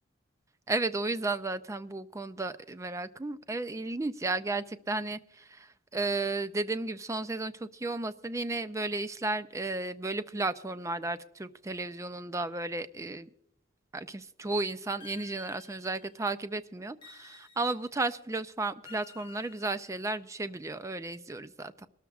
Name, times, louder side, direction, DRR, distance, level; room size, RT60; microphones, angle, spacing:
voice 1, 0.7-13.3 13.9-21.9, right 2 dB, 15° right, 12 dB, 0.4 m, -34 dB
sound 1, 15.0-16.3 17.0-18.1 18.8-20.4, left 6 dB, 25° left, 0.9 m, -54 dB
23.5 x 13.0 x 2.4 m, 0.78 s
head